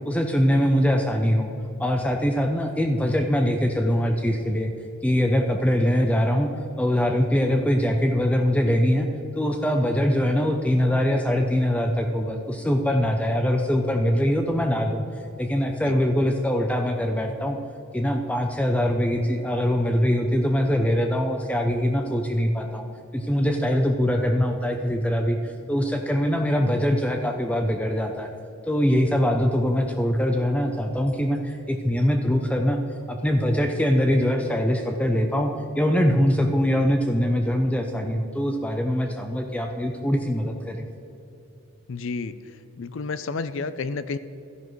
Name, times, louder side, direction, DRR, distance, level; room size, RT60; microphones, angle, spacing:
voice 1, 0.1-1.5 1.8-4.7 5.0-6.5 6.8-9.1 9.4-15.0 15.4-17.6 17.9-22.9 23.1-25.4 25.7-28.3 28.6-32.8 33.1-40.9, equal, 5° left, 4 dB, 0.5 m, -23 dB
voice 2, 41.9-42.3 42.8-44.2, left 4 dB, 65° left, 13 dB, 0.4 m, -30 dB
12.5 x 11.0 x 3.1 m, 2.8 s
head